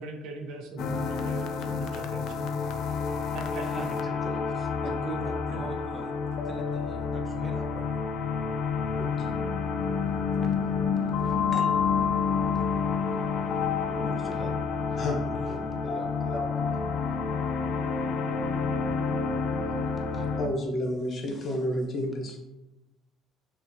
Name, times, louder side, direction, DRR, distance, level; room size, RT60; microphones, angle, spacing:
voice 1, 0.0-2.6 3.3-3.6 5.5-5.7 6.3-6.4, right 3 dB, 70° right, 3 dB, 0.7 m, -40 dB
sound 1, 0.8-20.5, left 5 dB, 65° left, 0.4 m, -29 dB
voice 2, 3.5-3.9 4.2-6.2 6.4-8.0 10.4-10.6 10.9-11.7 14.0-14.5 14.9-15.0 15.8-16.8 20.0-20.3, right 3 dB, 15° right, 2 dB, 0.7 m, -42 dB
voice 3, 13.9-14.4 15.0-15.8 20.4-22.4, left 1 dB, 45° left, 1 dB, 0.9 m, -31 dB
6.0 x 2.5 x 2.7 m, 0.98 s
cardioid pair, 115°, 0 cm